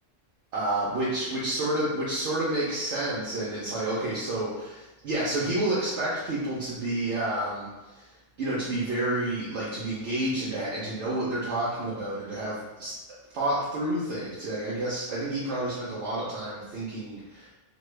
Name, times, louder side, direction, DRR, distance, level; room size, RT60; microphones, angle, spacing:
voice 1, 0.5-8.1 8.4-12.9 13.3-17.5, right 1 dB, 65° right, -8 dB, 1.0 m, -29 dB
3.1 x 2.1 x 3.2 m, 1.1 s
omnidirectional pair, 1.3 m